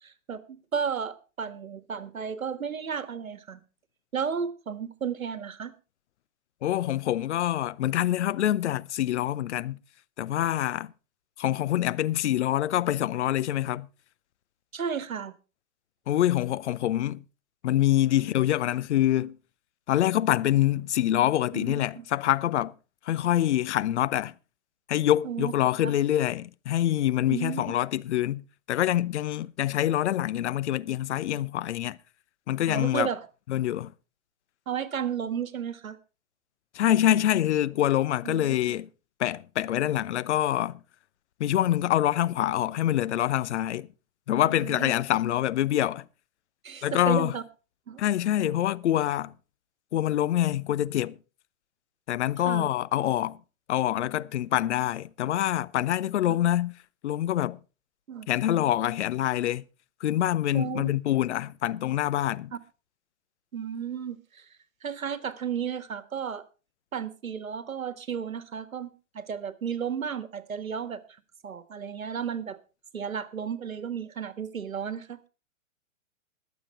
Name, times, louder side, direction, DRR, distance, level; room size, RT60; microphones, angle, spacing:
voice 1, 0.0-3.6 4.1-5.7 14.7-15.3 21.5-22.1 25.2-25.5 25.8-25.9 27.3-27.7 32.7-33.2 34.7-36.0 38.2-38.6 44.4-44.9 46.6-47.4 47.9-48.0 48.4-48.5 52.4-52.7 56.3-56.4 58.1-58.3 60.5-60.9 62.5-62.6 63.5-64.4 64.8-66.4 66.9-71.0 71.4-72.6 72.9-75.3, right 7 dB, 80° right, 1.5 m, -33 dB
voice 2, 6.6-9.8 10.2-10.9 11.4-13.9 16.1-17.2 17.6-19.4 19.9-22.7 23.1-24.3 24.9-32.0 32.5-33.1 33.5-33.9 36.7-38.9 39.2-40.8 41.4-43.9 44.3-46.0 46.8-47.3 48.0-49.3 49.9-51.2 52.1-53.4 53.7-56.7 57.0-57.6 58.3-59.6 60.0-62.5, left 12 dB, 60° left, 0.7 m, -25 dB
21.0 x 7.5 x 4.3 m
hypercardioid pair, 120°, 40 cm